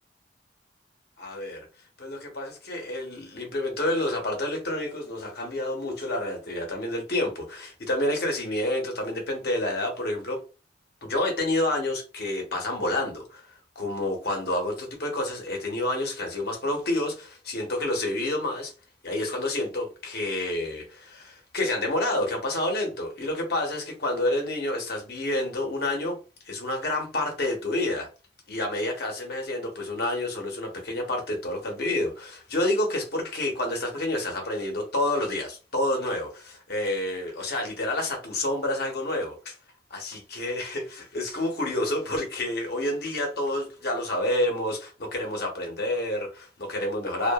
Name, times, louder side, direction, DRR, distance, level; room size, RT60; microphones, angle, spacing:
voice 1, 1.2-1.7 2.0-10.4 11.0-13.5 13.8-18.7 19.0-26.2 26.5-28.1 28.5-39.6 39.9-47.3, left 1 dB, 60° left, 0.9 m, -29 dB
2.6 x 2.4 x 2.3 m
head